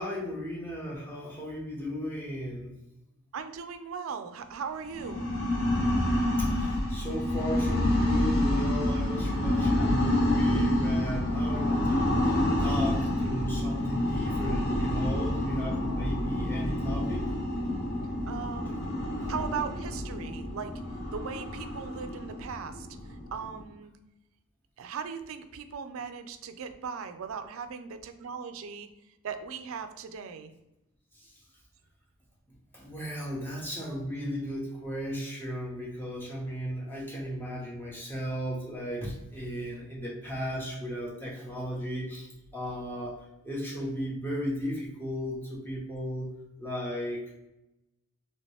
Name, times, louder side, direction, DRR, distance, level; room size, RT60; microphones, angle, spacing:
voice 1, 0.0-2.7 6.4-17.3 31.2-31.3 32.7-43.2 43.4-46.3 46.6-47.2, equal, 10° left, -4 dB, 0.8 m, -35 dB
voice 2, 3.3-5.3 18.3-18.8 19.3-20.8 21.1-23.9 24.8-28.9 29.2-30.5, right 6 dB, 75° right, 9 dB, 0.4 m, -38 dB
sound 1, 4.9-23.6, left 1 dB, 45° left, 0.7 m, -28 dB
3.0 x 2.9 x 3.0 m, 0.92 s
head